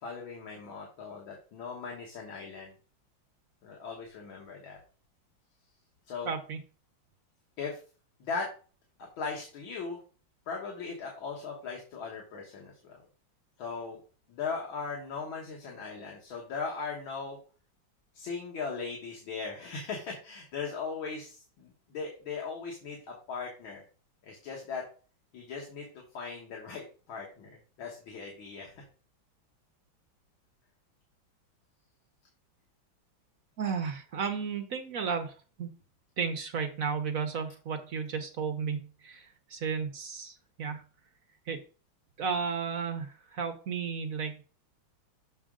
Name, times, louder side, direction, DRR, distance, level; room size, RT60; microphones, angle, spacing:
voice 1, 0.0-2.8 3.6-4.8 6.1-6.3 7.6-7.8 8.2-8.5 9.2-10.0 10.5-13.0 13.6-14.0 14.3-17.4 18.1-23.8 24.2-24.9 25.3-27.5 27.8-28.8, left 5 dB, 80° left, -1 dB, 2.2 m, -38 dB
voice 2, 6.2-6.6 33.6-35.3 35.6-35.7 36.2-40.8 41.5-41.6 42.2-44.4, right 6 dB, 55° right, 6 dB, 1.0 m, -33 dB
7.1 x 6.2 x 3.7 m, 0.37 s
omnidirectional pair, 2.2 m